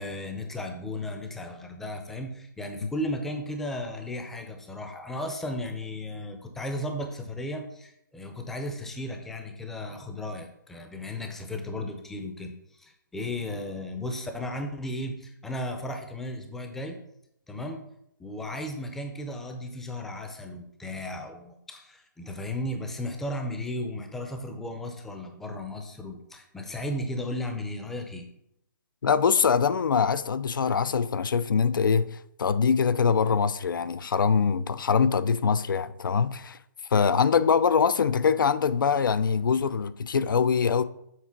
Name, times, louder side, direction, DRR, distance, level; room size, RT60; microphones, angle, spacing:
voice 1, 0.0-17.0 17.5-17.8 18.2-28.3, left 1 dB, 5° left, 0.5 m, -35 dB
voice 2, 29.0-36.6 36.9-40.8, left 6 dB, 75° left, 0.4 m, -23 dB
7.3 x 3.7 x 5.8 m
hypercardioid pair, 155°, 11 cm